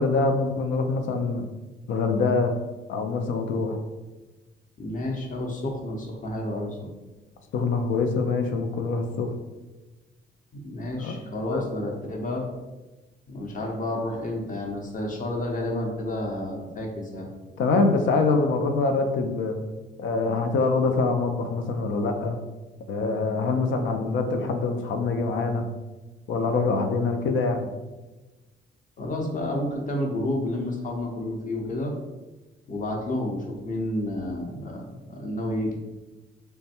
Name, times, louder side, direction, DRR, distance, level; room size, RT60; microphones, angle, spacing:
voice 1, 0.0-1.5 1.9-2.6 2.9-3.8 7.5-9.3 11.0-11.2 11.5-11.7 17.6-19.6 20.0-22.4 22.9-25.7 26.3-27.7, left 3 dB, 75° left, 6 dB, 0.5 m, -24 dB
voice 2, 4.8-6.9 10.5-12.5 13.3-17.3 29.0-31.9 32.7-35.8, left 1 dB, 40° left, 0 dB, 0.9 m, -30 dB
3.4 x 2.2 x 4.2 m, 1.2 s
cardioid pair, 90°, 20 cm